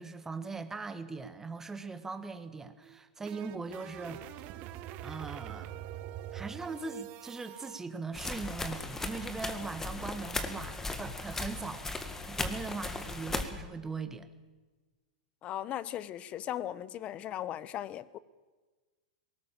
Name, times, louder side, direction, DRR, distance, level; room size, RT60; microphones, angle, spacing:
voice 1, 0.0-4.2 5.0-5.8 6.3-14.3, right 4 dB, 10° right, 9 dB, 1.4 m, -40 dB
sound 1, 2.8-7.8, right 12 dB, 45° right, 1.2 m, -44 dB
sound 2, 8.1-13.4, left 2 dB, 10° left, 1.7 m, -37 dB
voice 2, 15.4-18.2, left 12 dB, 30° left, 18 dB, 0.8 m, -37 dB
19.5 x 18.0 x 7.4 m, 1.3 s
hypercardioid pair, 125°, 4 cm